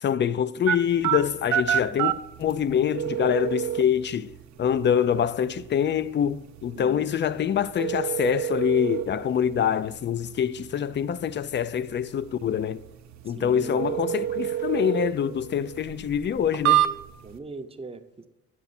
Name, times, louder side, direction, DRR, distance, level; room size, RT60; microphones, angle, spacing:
voice 1, 0.0-2.1 2.4-4.3 4.6-12.8 13.2-16.8, left 8 dB, 40° left, 0.4 m, -25 dB
sound 1, 0.7-17.4, right 11 dB, 70° right, 0.6 m, -30 dB
voice 2, 6.7-7.2 13.3-14.0 17.2-18.3, right 4 dB, 20° right, 0.6 m, -40 dB
9.5 x 5.8 x 4.2 m
cardioid pair, 90°, 30 cm